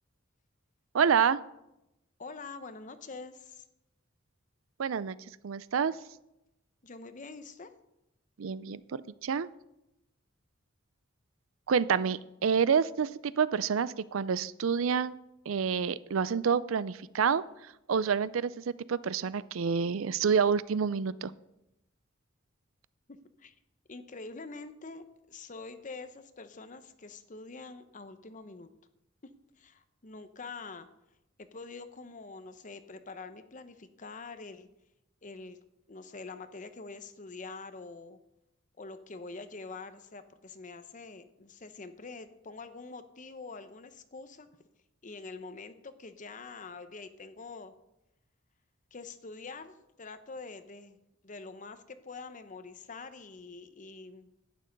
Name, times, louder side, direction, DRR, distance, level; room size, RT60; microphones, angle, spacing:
voice 1, 0.9-1.4 4.8-5.2 5.4-6.0 8.4-9.5 11.7-15.1 15.5-17.4 17.9-21.3, right 6 dB, 85° right, 18 dB, 0.5 m, -28 dB
voice 2, 2.2-3.6 6.8-7.7 23.4-23.5 23.9-28.7 29.6-30.9 31.4-34.7 35.2-35.6 35.9-38.2 38.8-44.5 45.0-47.7 48.9-51.0 51.2-54.3, left 3 dB, 40° left, 10 dB, 0.8 m, -45 dB
11.0 x 9.0 x 5.3 m, 0.89 s
head